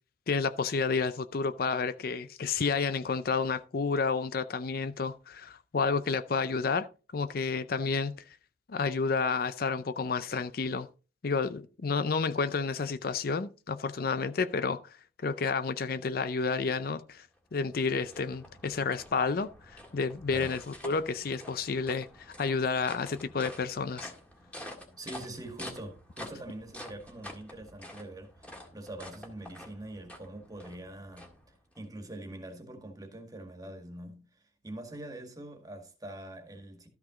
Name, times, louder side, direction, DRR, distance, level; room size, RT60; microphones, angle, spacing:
voice 1, 0.3-6.9 7.1-8.2 8.7-10.9 11.2-14.9 15.2-17.3 17.5-24.1, left 4 dB, 55° left, 0.5 m, -30 dB
sound 1, 17.4-31.8, left 1 dB, 10° left, 1.9 m, -48 dB
voice 2, 25.0-36.9, right 1 dB, 20° right, 1.9 m, -44 dB
13.0 x 6.0 x 3.8 m
head